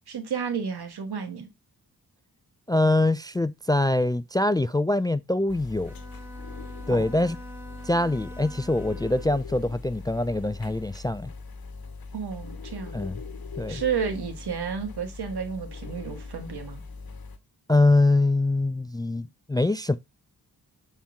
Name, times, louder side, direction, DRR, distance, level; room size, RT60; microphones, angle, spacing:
voice 1, 0.1-1.5 6.9-7.1 12.1-13.0 13.7-16.8, right 6 dB, 80° right, 1.6 m, -31 dB
voice 2, 2.7-5.9 6.9-7.4 7.8-11.3 12.9-13.2 13.6-13.8 17.7-20.0, left 2 dB, 10° left, 0.3 m, -24 dB
sound 1, 5.5-17.4, left 4 dB, 65° left, 1.2 m, -40 dB
Bowed string instrument, 5.9-9.5, right 2 dB, 5° right, 0.8 m, -45 dB
7.2 x 4.3 x 3.6 m
cardioid pair, 60°, 39 cm